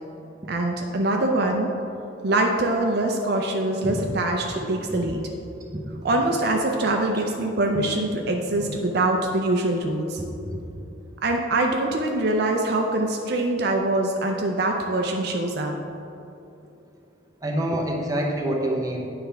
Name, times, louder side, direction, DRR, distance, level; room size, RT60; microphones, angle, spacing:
voice 1, 0.5-1.7 2.2-5.2 6.0-10.2 11.2-15.7, right 2 dB, 50° right, 2 dB, 0.5 m, -24 dB
voice 2, 4.5-5.0 5.7-6.0 8.5-8.7 10.2-10.6 17.4-19.1, right 1 dB, 20° right, -1 dB, 0.8 m, -28 dB
9.6 x 3.4 x 5.5 m, 2.8 s
head